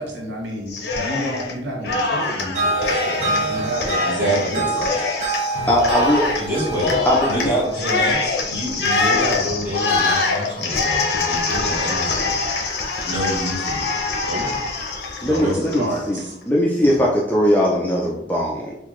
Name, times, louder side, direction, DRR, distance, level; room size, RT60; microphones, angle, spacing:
voice 1, 0.0-5.0 14.3-14.4 15.2-16.4 17.0-17.1, right 1 dB, 70° right, 0 dB, 0.8 m, -30 dB
Cheering, 0.7-1.5 1.8-16.2, left 3 dB, 60° left, 0.6 m, -24 dB
sound 1, 2.5-9.7, right 2 dB, 40° right, 0.6 m, -27 dB
voice 2, 4.0-4.7 6.3-12.3 13.1-13.9 15.4-15.5, right 1 dB, 10° right, -8 dB, 1.2 m, -27 dB
voice 3, 5.7-6.3 7.1-7.5 15.2-18.8, equal, 10° left, -3 dB, 0.3 m, -20 dB
3.7 x 2.3 x 3.0 m, 0.85 s
head